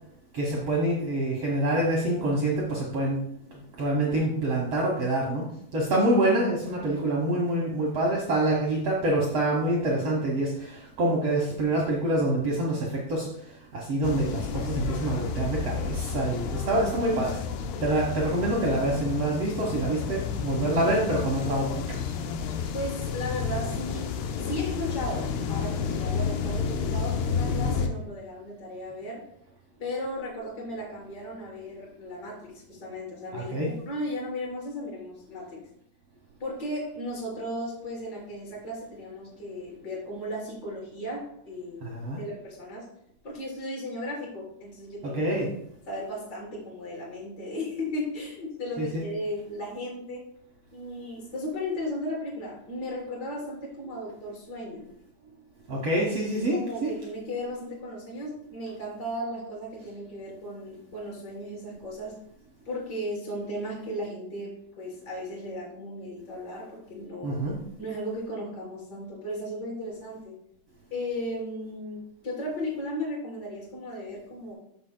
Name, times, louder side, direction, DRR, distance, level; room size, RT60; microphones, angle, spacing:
voice 1, 0.3-3.2 3.5-5.5 5.7-17.4 17.8-22.0 33.3-33.7 41.8-42.2 45.0-45.5 48.8-49.0 55.7-56.9 67.2-67.5, right 1 dB, 85° right, -3 dB, 1.3 m, -26 dB
sound 1, 14.0-27.9, left 6 dB, 80° left, 2.7 m, -31 dB
voice 2, 16.5-16.9 22.7-24.1 24.4-29.2 29.8-35.6 36.4-42.9 43.2-45.2 45.9-50.2 50.7-54.8 56.5-62.2 62.7-67.4 67.8-70.4 70.9-74.5, left 1 dB, 25° left, -5 dB, 3.8 m, -35 dB
13.5 x 6.5 x 2.2 m, 0.73 s
omnidirectional pair, 4.9 m